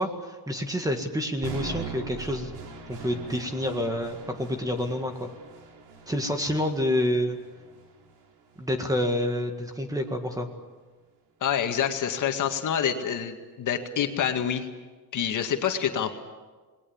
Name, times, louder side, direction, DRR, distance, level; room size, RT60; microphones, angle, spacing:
voice 1, 0.0-2.6 2.9-5.3 6.1-7.4 8.6-10.5, left 1 dB, 10° right, 5 dB, 1.8 m, -28 dB
sound 1, 1.4-9.4, right 5 dB, 85° right, 3.8 m, -42 dB
voice 2, 11.4-14.7 15.1-16.1, left 8 dB, 50° left, 5 dB, 2.1 m, -27 dB
28.0 x 20.5 x 7.2 m, 1.3 s
cardioid pair, 160°, 38 cm